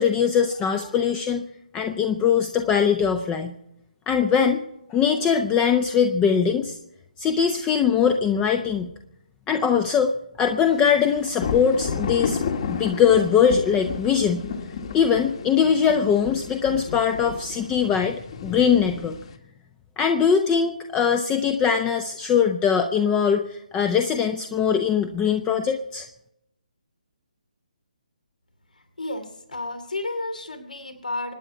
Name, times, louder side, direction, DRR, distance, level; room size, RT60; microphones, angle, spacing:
voice 1, 0.0-1.4 1.7-3.5 4.1-4.6 4.9-6.8 7.2-8.9 9.5-10.1 10.4-12.4 12.7-14.4 14.9-19.2 20.0-26.1, left 7 dB, 15° left, 7 dB, 0.7 m, -21 dB
sound 1, 10.8-19.3, left 5 dB, 45° left, 1.8 m, -32 dB
voice 2, 29.0-31.3, left 2 dB, 75° left, 8 dB, 2.7 m, -32 dB
26.5 x 9.8 x 4.8 m, 0.82 s
figure-of-eight pair, 140°, 4 cm